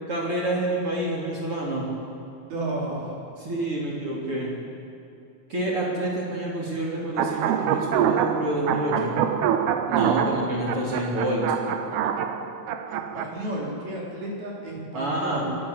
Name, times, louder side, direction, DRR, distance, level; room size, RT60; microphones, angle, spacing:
voice 1, 0.1-1.9 3.4-4.5 5.5-9.2 9.9-11.4 14.9-15.4, right 1 dB, 35° right, -4 dB, 3.9 m, -28 dB
voice 2, 2.5-3.2 12.9-15.6, right 1 dB, 70° right, -4 dB, 6.4 m, -32 dB
sound 1, 7.2-13.2, right 8 dB, 90° right, 3.0 m, -25 dB
27.0 x 16.5 x 7.1 m, 2.6 s
omnidirectional pair, 4.5 m